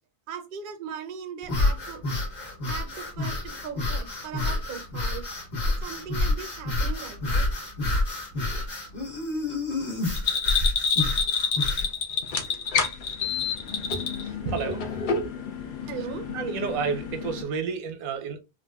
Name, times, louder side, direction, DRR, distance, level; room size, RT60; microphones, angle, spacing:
voice 1, 0.3-2.0 2.7-5.3 5.8-7.5 11.2-11.4 11.7-12.6 13.8-13.9 14.2-14.3 15.3-16.4, right 7 dB, 55° right, 0.6 m, -40 dB
sound 1, 1.4-11.9, left 2 dB, 45° left, 1.2 m, -28 dB
Bell, 10.1-14.3 14.6-14.7, left 5 dB, 65° left, 0.8 m, -27 dB
sound 2, 12.2-17.4, left 5 dB, 85° left, 0.4 m, -31 dB
voice 2, 14.2-14.8 16.3-18.4, right 5 dB, 90° right, 1.1 m, -30 dB
3.6 x 2.3 x 2.2 m
omnidirectional pair, 1.4 m